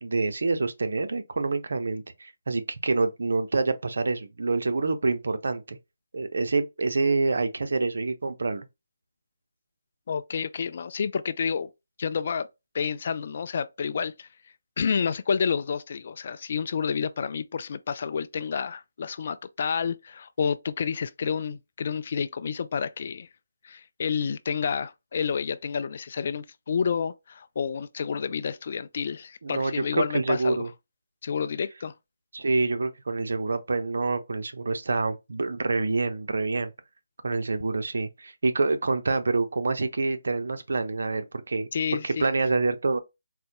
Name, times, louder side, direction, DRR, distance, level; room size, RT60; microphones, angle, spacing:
voice 1, 0.0-5.8 6.1-8.7 29.4-30.7 32.3-36.7 37.2-41.7 42.0-43.0, right 3 dB, 70° right, 0.6 m, -27 dB
voice 2, 10.1-11.7 12.0-12.5 12.7-14.3 14.8-23.3 23.6-30.7 31.2-31.9 41.7-42.3, left 6 dB, 45° left, 0.3 m, -29 dB
4.0 x 2.2 x 2.8 m
figure-of-eight pair, 160°, 0 cm